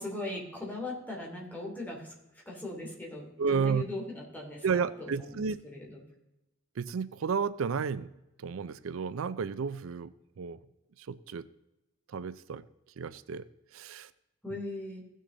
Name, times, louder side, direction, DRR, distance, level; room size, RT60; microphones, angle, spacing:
voice 1, 0.0-2.1 2.5-6.0 14.4-15.0, left 2 dB, 10° left, -2 dB, 2.7 m, -39 dB
voice 2, 3.4-3.8 4.6-5.6 6.8-8.1 8.4-10.6 11.0-11.4 12.1-12.6 13.0-13.4 13.7-14.1, right 5 dB, 90° right, 16 dB, 0.4 m, -32 dB
16.0 x 6.4 x 3.8 m, 0.90 s
head